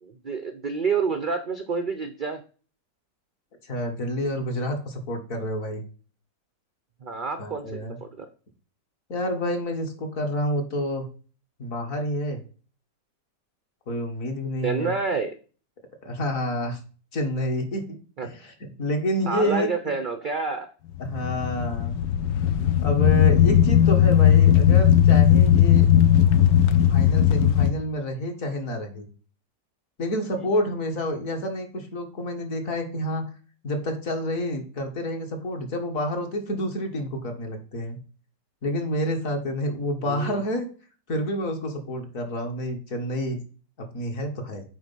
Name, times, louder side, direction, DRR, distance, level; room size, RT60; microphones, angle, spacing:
voice 1, 0.0-2.4 7.0-8.3 14.6-15.3 18.2-18.3 19.3-20.7 30.4-30.5 40.0-40.4, right 5 dB, 75° right, 9 dB, 0.4 m, -28 dB
voice 2, 3.6-5.8 7.4-8.0 9.1-11.1 11.6-12.4 13.9-14.9 16.0-16.8 17.1-18.0 18.3-19.7 21.0-22.0 22.8-25.9 26.9-29.1 30.0-33.3 33.6-38.0 38.6-40.7 41.1-43.4 43.8-44.6, equal, 50° left, 4 dB, 1.8 m, -28 dB
sound 1, 21.0-27.7, left 10 dB, 90° left, 1.3 m, -17 dB
8.7 x 3.5 x 5.4 m, 0.38 s
omnidirectional pair, 1.8 m